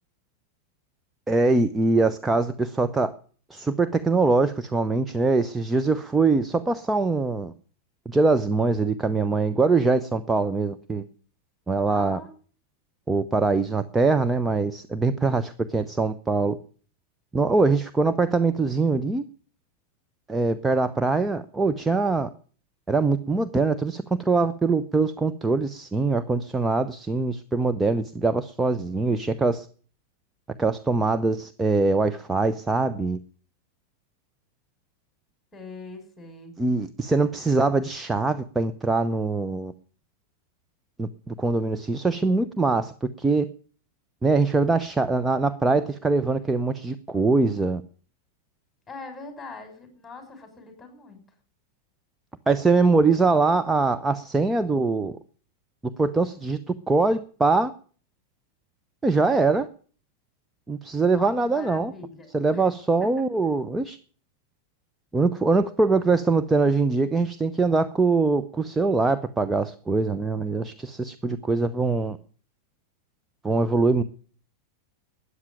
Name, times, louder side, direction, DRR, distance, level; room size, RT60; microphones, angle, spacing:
voice 1, 1.3-3.1 3.5-7.5 8.1-11.0 11.7-12.2 13.1-16.6 17.3-19.2 20.3-22.3 22.9-29.7 30.6-33.2 36.6-39.7 41.0-43.5 44.2-47.8 52.5-55.2 56.0-56.6 56.9-57.7 59.0-59.7 60.7-61.9 62.3-64.0 65.1-72.2 73.4-74.0, right 3 dB, 10° right, 10 dB, 0.8 m, -23 dB
voice 2, 11.9-12.3 35.5-36.6 48.9-51.2 61.1-62.7 63.0-63.2, left 3 dB, 10° left, 5 dB, 6.1 m, -42 dB
13.5 x 9.7 x 9.2 m, 0.43 s
figure-of-eight pair, 90°, 0 cm